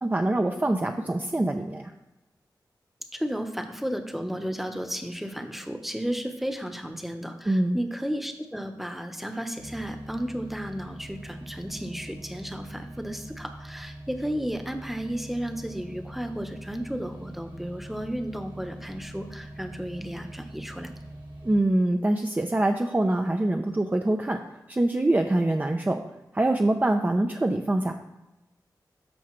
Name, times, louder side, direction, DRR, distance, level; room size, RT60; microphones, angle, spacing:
voice 1, 0.0-1.9 7.5-7.8 21.4-26.0 26.3-27.9, right 1 dB, 20° right, 4 dB, 0.6 m, -24 dB
voice 2, 3.1-20.9, equal, 5° right, 6 dB, 1.0 m, -33 dB
sound 1, 9.6-21.6, right 1 dB, 80° right, 1.7 m, -43 dB
13.0 x 4.8 x 3.2 m, 1.0 s
wide cardioid pair, 75°, 8 cm